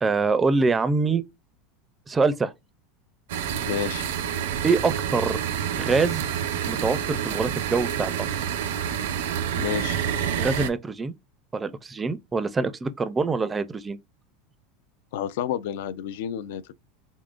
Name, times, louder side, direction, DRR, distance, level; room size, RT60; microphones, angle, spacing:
voice 1, 0.0-1.2 2.1-2.5 4.6-5.4 5.8-6.2 6.7-8.2 10.4-11.1 11.5-14.0, right 4 dB, 15° right, 0.4 m, -24 dB
sound 1, 3.3-10.7, right 9 dB, 85° right, 0.6 m, -28 dB
voice 2, 3.7-4.0 9.6-10.0 15.1-16.7, left 10 dB, 75° left, 0.4 m, -30 dB
3.6 x 3.5 x 2.5 m
supercardioid pair, 150°, 0 cm